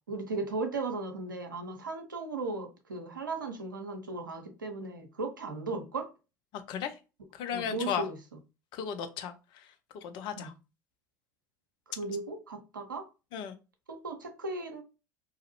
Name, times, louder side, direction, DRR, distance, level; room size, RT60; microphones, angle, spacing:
voice 1, 0.1-6.1 7.5-8.2 10.4-10.5 11.9-13.1 13.9-14.8, right 3 dB, 85° right, 0.5 m, -36 dB
voice 2, 6.5-6.9 7.4-8.1 8.7-9.3 9.9-10.5 13.3-13.5, left 8 dB, 50° left, 0.4 m, -35 dB
2.4 x 2.0 x 2.7 m
figure-of-eight pair, 70°, 10 cm